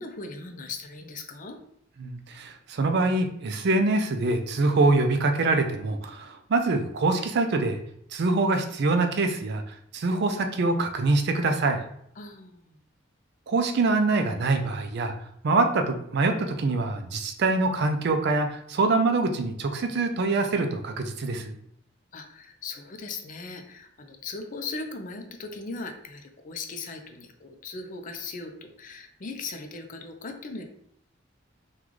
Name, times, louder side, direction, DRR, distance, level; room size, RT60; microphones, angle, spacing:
voice 1, 0.0-1.6 12.2-12.8 22.1-30.6, left 3 dB, 45° left, 5 dB, 0.4 m, -38 dB
voice 2, 2.0-7.8 8.1-11.8 13.5-15.1 15.4-21.5, right 3 dB, 60° right, 6 dB, 0.4 m, -24 dB
3.8 x 2.3 x 3.1 m, 0.70 s
head